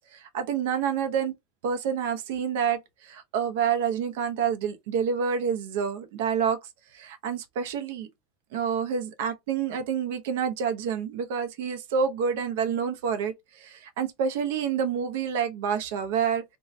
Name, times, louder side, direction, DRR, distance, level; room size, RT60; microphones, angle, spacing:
voice 1, 0.1-1.3 1.6-6.6 6.9-8.1 8.5-16.4, right 7 dB, 75° right, 0.6 m, -28 dB
2.6 x 2.2 x 3.0 m
supercardioid pair, 115°, 0 cm